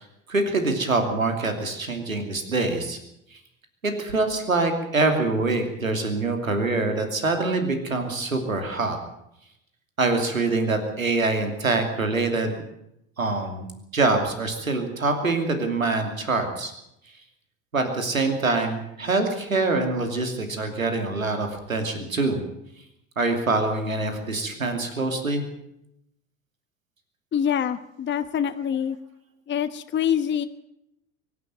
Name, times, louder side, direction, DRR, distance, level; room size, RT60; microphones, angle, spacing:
voice 1, 0.0-3.0 3.3-3.4 3.8-9.0 10.0-12.5 13.2-13.7 13.9-16.7 17.7-22.4 23.2-25.4, right 3 dB, 85° right, 5 dB, 2.9 m, -25 dB
voice 2, 27.3-29.0 29.5-30.5, left 9 dB, 30° left, 9 dB, 1.1 m, -25 dB
24.0 x 11.5 x 9.4 m, 0.80 s
figure-of-eight pair, 70°, 40 cm